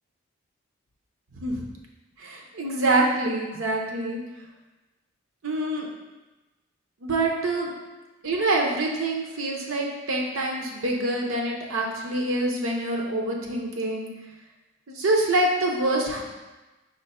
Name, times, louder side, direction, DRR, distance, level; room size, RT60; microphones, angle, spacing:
voice 1, 1.3-1.6 2.2-4.2 5.4-5.9 7.0-7.7 8.2-14.1 14.9-16.2, right 2 dB, 80° right, 0 dB, 0.7 m, -26 dB
5.1 x 2.2 x 4.2 m, 1.1 s
head